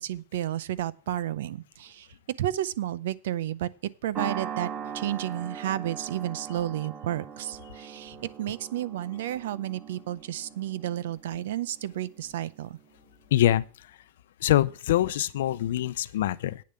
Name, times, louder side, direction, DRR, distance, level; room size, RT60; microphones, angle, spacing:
voice 1, 0.0-2.1 2.4-3.7 4.0-12.8, right 12 dB, 75° right, 0.6 m, -32 dB
sound 1, 4.1-12.7, right 7 dB, 25° right, 0.8 m, -40 dB
voice 2, 13.3-13.6 14.4-16.6, left 13 dB, 75° left, 0.6 m, -24 dB
8.7 x 6.8 x 7.8 m
supercardioid pair, 165°, 0 cm